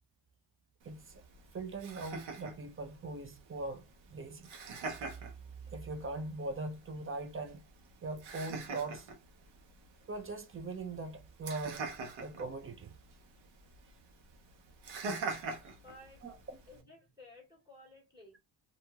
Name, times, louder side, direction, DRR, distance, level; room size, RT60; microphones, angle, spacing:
voice 1, 0.8-1.2 1.5-3.8 4.1-4.5 5.7-7.6 8.0-9.1 10.1-11.9 12.2-13.0 16.2-16.6, right 3 dB, 30° right, 0.5 m, -41 dB
Laughter, 0.8-16.8, right 4 dB, 90° right, 0.9 m, -45 dB
voice 2, 15.5-16.2 16.7-18.4, left 2 dB, 10° right, 1.5 m, -56 dB
2.8 x 2.5 x 2.3 m
cardioid pair, 105°, 44 cm